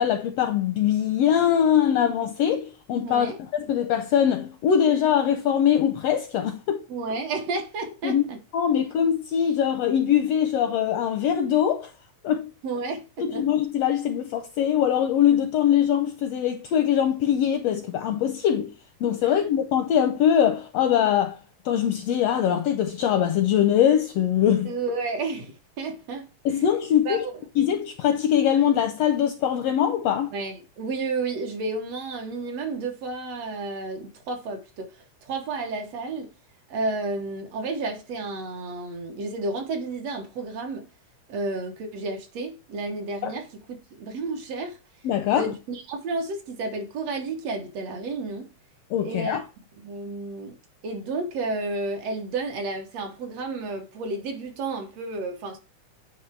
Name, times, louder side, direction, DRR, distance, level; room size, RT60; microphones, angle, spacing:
voice 1, 0.0-6.8 8.0-8.2 8.5-11.9 12.2-12.5 13.2-18.7 19.0-21.4 21.6-24.7 26.4-27.2 27.6-30.3 43.2-43.3 45.0-45.4 48.9-49.4, left 9 dB, 80° left, 1.5 m, -22 dB
voice 2, 3.1-3.4 6.9-8.4 12.6-13.5 19.2-19.5 24.7-26.3 27.1-27.3 30.3-34.9 35.2-36.3 36.7-40.9 41.3-44.8 45.3-48.5 49.0-49.5 49.8-50.6 50.8-55.6, right 3 dB, 65° right, 2.0 m, -31 dB
9.4 x 3.2 x 4.5 m
omnidirectional pair, 3.4 m